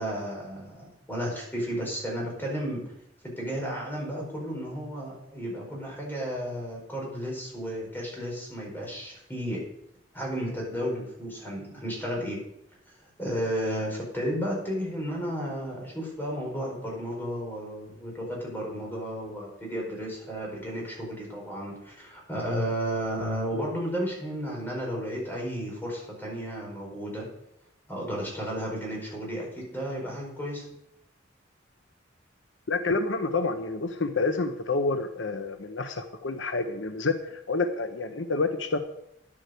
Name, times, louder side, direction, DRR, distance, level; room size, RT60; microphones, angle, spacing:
voice 1, 0.0-2.8 3.2-9.6 10.1-12.4 13.2-27.3 27.9-30.6, equal, 10° left, -2 dB, 4.9 m, -33 dB
voice 2, 32.7-38.8, left 3 dB, 80° left, 9 dB, 0.9 m, -28 dB
10.5 x 8.8 x 6.7 m, 0.78 s
head